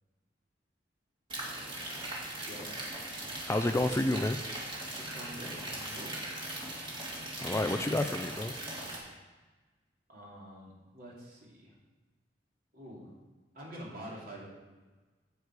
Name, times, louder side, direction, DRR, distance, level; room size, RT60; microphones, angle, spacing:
sound 1, 1.3-9.0, right 1 dB, 30° right, 2.2 m, -39 dB
voice 1, 3.5-4.4 7.4-8.5, left 2 dB, 15° left, 8 dB, 0.3 m, -29 dB
voice 2, 4.9-6.1 10.1-11.7 12.7-13.1 13.5-14.5, equal, 50° right, -4 dB, 2.9 m, -46 dB
9.3 x 8.3 x 4.8 m, 1.3 s
head